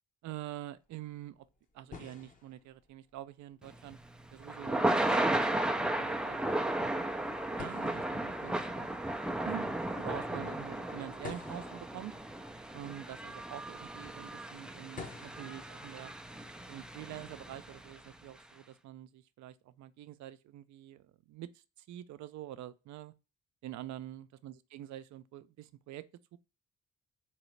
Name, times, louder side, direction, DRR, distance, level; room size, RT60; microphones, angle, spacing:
voice 1, 0.2-1.5 1.7-4.0 4.3-6.4 6.6-6.9 7.6-8.9 9.4-12.1 12.7-16.1 16.7-23.1 23.6-26.1 26.3-26.4, right 13 dB, 70° right, 0.5 m, -46 dB
sound 1, 0.8-17.7, left 4 dB, 25° left, 0.8 m, -53 dB
Thunder / Rain, 3.7-18.0, right 1 dB, 5° right, 0.3 m, -35 dB
sound 2, 6.7-11.8, left 3 dB, 60° left, 0.9 m, -56 dB
4.0 x 2.9 x 3.1 m
cardioid pair, 90°, 30 cm